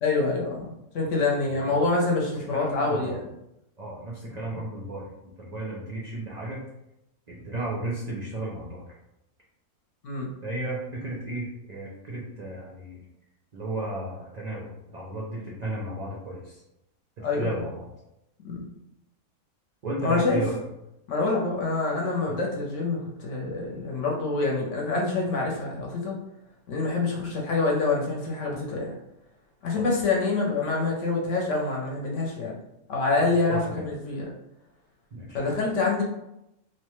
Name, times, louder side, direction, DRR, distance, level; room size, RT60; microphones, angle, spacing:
voice 1, 0.0-3.2 10.0-10.3 17.2-17.6 18.4-18.6 20.0-20.4 21.1-26.2 26.7-29.0 29.6-32.5 32.9-34.3 35.3-36.0, left 3 dB, 65° left, -2 dB, 1.0 m, -26 dB
voice 2, 1.5-1.8 2.5-3.2 3.8-6.6 7.3-8.8 10.4-13.0 13.5-16.6 17.2-17.8 19.8-20.5 29.8-29.9 33.5-33.7 35.1-35.4, right 2 dB, 75° right, -5 dB, 0.4 m, -34 dB
2.9 x 2.1 x 3.0 m, 0.86 s
omnidirectional pair, 1.5 m